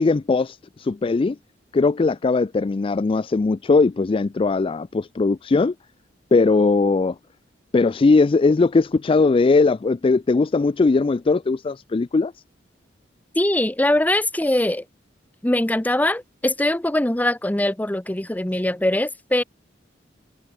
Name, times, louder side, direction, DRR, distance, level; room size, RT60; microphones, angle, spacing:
voice 1, 0.0-1.4 1.7-5.7 6.3-7.2 7.7-12.3, left 3 dB, 30° left, 0.3 m, -19 dB
voice 2, 13.3-14.8 15.4-19.4, left 1 dB, 10° left, 0.7 m, -22 dB
head